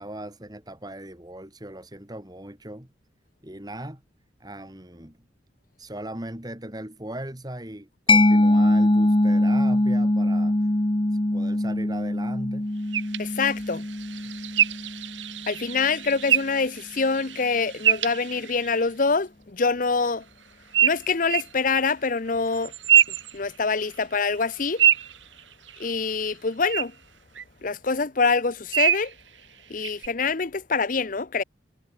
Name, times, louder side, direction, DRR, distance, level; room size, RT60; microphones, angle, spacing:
voice 1, 0.0-2.9 3.4-4.0 4.4-5.2 5.8-10.7 11.3-12.7, right 1 dB, 20° right, 2.7 m, -38 dB
Mallet percussion, 8.1-15.5, left 1 dB, 25° left, 1.1 m, -22 dB
sound 1, 12.9-18.8 20.7-21.5 22.5-24.0 24.3-26.0 26.7-26.8 27.3-27.4 28.7-29.1 29.8-30.1, right 10 dB, 80° right, 3.2 m, -25 dB
voice 2, 13.2-13.8 15.5-20.2 20.8-22.7 23.3-24.8 25.8-26.9 27.6-29.1 29.7-31.4, left 4 dB, 45° left, 0.8 m, -25 dB
head